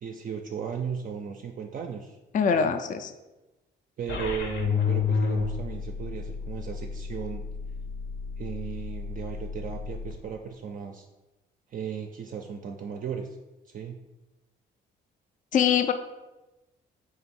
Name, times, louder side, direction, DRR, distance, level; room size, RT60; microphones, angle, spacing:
voice 1, 0.0-2.2 2.5-2.7 4.0-7.4 8.4-11.1 11.7-13.4 13.7-14.0, right 7 dB, 45° right, 3 dB, 0.4 m, -36 dB
voice 2, 2.3-3.1 15.5-15.9, left 7 dB, 40° left, 9 dB, 0.4 m, -23 dB
sound 1, 4.1-10.1, left 5 dB, 65° left, 0.9 m, -31 dB
3.9 x 2.9 x 4.3 m, 1.1 s
cardioid pair, 90°, 20 cm